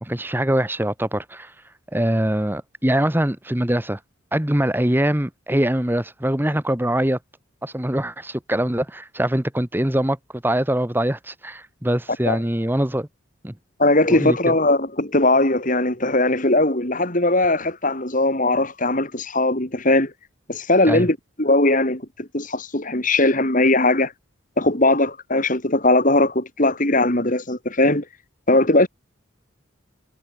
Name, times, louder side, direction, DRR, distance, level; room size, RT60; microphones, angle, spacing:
voice 1, 0.0-1.5 1.9-4.0 4.3-7.2 7.6-13.1 13.4-13.5 14.1-14.4 20.9-21.1, right 1 dB, 10° right, 1.2 m, -23 dB
voice 2, 13.8-20.1 20.5-24.1 24.6-28.1 28.5-28.9, left 2 dB, 40° left, 3.9 m, -19 dB
head